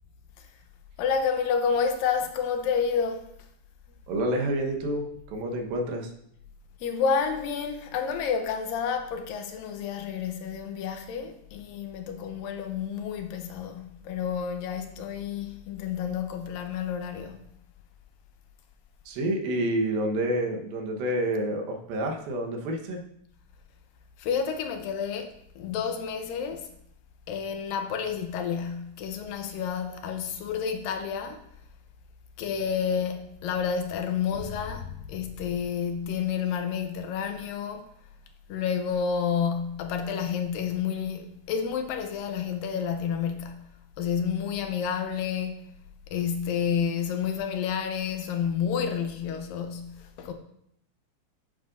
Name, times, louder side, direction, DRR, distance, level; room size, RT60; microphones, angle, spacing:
voice 1, 1.0-3.2 6.8-17.5 24.2-26.7 27.3-31.5 32.4-37.9 38.5-43.7 44.0-45.6 46.1-50.3, left 7 dB, 80° left, 2.4 m, -30 dB
voice 2, 4.1-6.1 19.1-23.0, right 1 dB, 85° right, 3.0 m, -28 dB
9.8 x 9.5 x 2.6 m
omnidirectional pair, 4.1 m